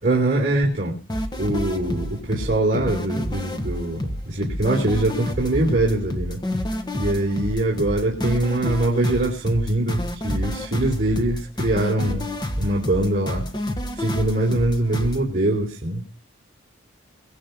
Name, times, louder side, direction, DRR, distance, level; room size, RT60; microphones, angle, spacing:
voice 1, 0.0-1.0 1.4-6.4 6.9-12.3 12.6-13.5 14.0-16.0, right 1 dB, 40° right, -3 dB, 3.9 m, -23 dB
sound 1, 1.1-15.2, equal, 20° left, 1.4 m, -29 dB
22.5 x 7.6 x 5.4 m, 0.35 s
head